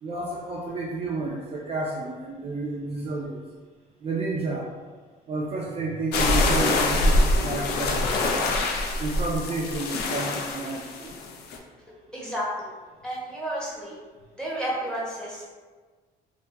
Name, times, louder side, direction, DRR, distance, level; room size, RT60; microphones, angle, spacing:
voice 1, 0.0-3.4 4.0-4.7 5.3-8.6 9.0-11.1, right 3 dB, 35° right, -4 dB, 0.4 m, -31 dB
sound 1, 6.1-11.6, left 2 dB, 75° left, 0.4 m, -24 dB
voice 2, 12.1-12.7 13.0-14.0 14.4-15.5, equal, 5° left, -7 dB, 0.9 m, -31 dB
2.6 x 2.2 x 2.8 m, 1.4 s
cardioid pair, 110°, 17 cm